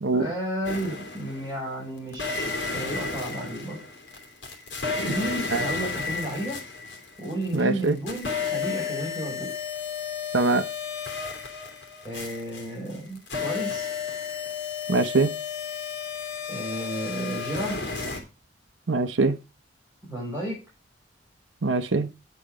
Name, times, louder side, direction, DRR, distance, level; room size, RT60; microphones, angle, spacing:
voice 1, 0.1-3.8 5.0-6.6 7.2-9.5 12.0-13.9 16.5-17.8 20.1-20.6, right 1 dB, 10° right, 5.6 m, -32 dB
sound 1, 0.6-1.5 2.1-7.5 7.8-18.2, left 5 dB, 70° left, 2.8 m, -32 dB
voice 2, 7.5-8.0 10.3-10.6 14.9-15.3 18.9-19.3 21.6-22.1, right 3 dB, 85° right, 0.8 m, -22 dB
8.5 x 8.4 x 4.9 m
head